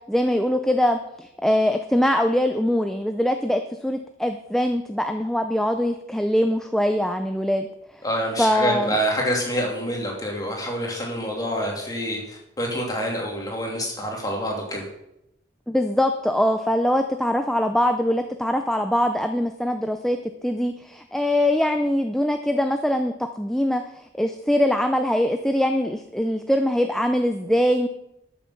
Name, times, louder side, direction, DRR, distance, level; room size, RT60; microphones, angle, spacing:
voice 1, 0.1-7.7 8.4-9.0 15.7-27.9, left 1 dB, ahead, 6 dB, 0.5 m, -22 dB
voice 2, 8.0-14.8, equal, 20° left, -1 dB, 2.9 m, -27 dB
13.0 x 7.1 x 5.8 m, 0.83 s
head